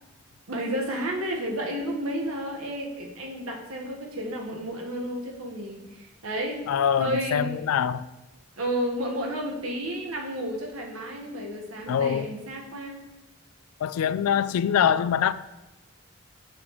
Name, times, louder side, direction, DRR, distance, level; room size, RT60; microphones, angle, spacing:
voice 1, 0.5-6.6 7.0-7.6 8.6-13.0, equal, 75° right, 1.3 m, -31 dB
voice 2, 6.7-8.0 11.9-12.3 13.8-15.3, left 8 dB, 85° left, 0.3 m, -24 dB
7.6 x 6.2 x 3.0 m
head